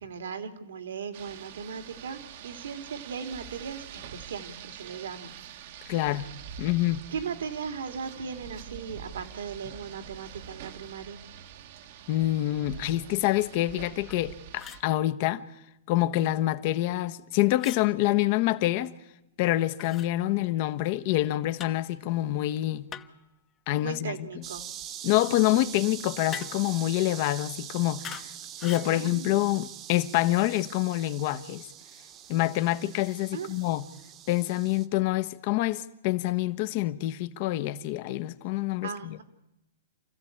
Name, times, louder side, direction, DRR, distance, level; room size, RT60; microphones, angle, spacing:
voice 1, 0.0-5.3 7.1-11.2 23.8-24.7 28.8-29.5 33.3-33.5 38.8-39.2, right 6 dB, 75° right, 2.6 m, -38 dB
Rain, 1.1-14.8, right 9 dB, 55° right, 1.5 m, -45 dB
voice 2, 5.9-6.3 6.6-7.0 12.1-15.4 15.9-18.9 19.4-22.8 23.7-24.4 25.0-28.2 28.6-31.7 32.3-33.8 34.3-39.2, left 15 dB, 50° left, 1.2 m, -26 dB
sound 1, 14.1-14.2 14.6-14.9 17.6-17.9 19.8-20.1 21.6-21.9 22.9-23.3 26.3-26.7 28.0-28.3 28.6-28.9, left 10 dB, 25° left, 1.1 m, -41 dB
sound 2, 24.4-34.9, right 10 dB, 35° right, 1.4 m, -43 dB
28.0 x 14.5 x 8.7 m
hypercardioid pair, 125°, 0 cm